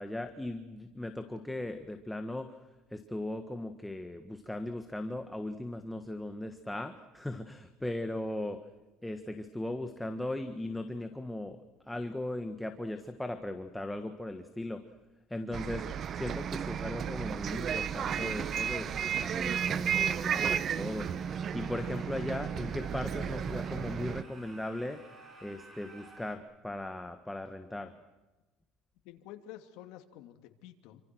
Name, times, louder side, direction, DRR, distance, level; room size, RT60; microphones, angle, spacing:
voice 1, 0.0-2.6 2.9-8.6 9.0-11.6 11.9-14.8 15.3-15.9 16.2-21.1 21.5-25.0 25.4-27.9, left 1 dB, 5° left, 7 dB, 1.6 m, -38 dB
Bus, 15.5-24.2, right 8 dB, 40° right, 1.0 m, -33 dB
sound 1, 17.9-26.4, right 2 dB, 25° right, 6.0 m, -53 dB
voice 2, 29.0-31.0, left 12 dB, 75° left, 6 dB, 2.9 m, -50 dB
28.5 x 26.5 x 6.4 m, 1.1 s
cardioid pair, 135°, 0 cm